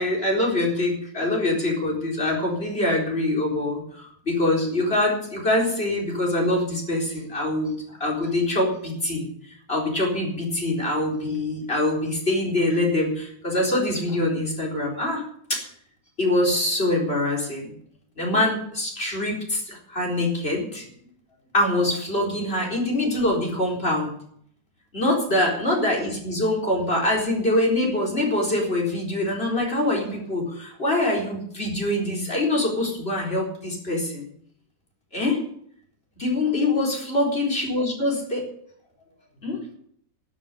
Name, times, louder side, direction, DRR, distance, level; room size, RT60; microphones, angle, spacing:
voice 1, 0.0-9.3 9.7-15.2 15.5-15.6 16.2-17.7 18.2-20.9 21.5-24.1 24.9-34.3 35.1-35.4 36.2-38.5 39.4-39.6, left 1 dB, 35° left, 0 dB, 4.4 m, -24 dB
13.0 x 7.4 x 10.0 m, 0.66 s
omnidirectional pair, 1.9 m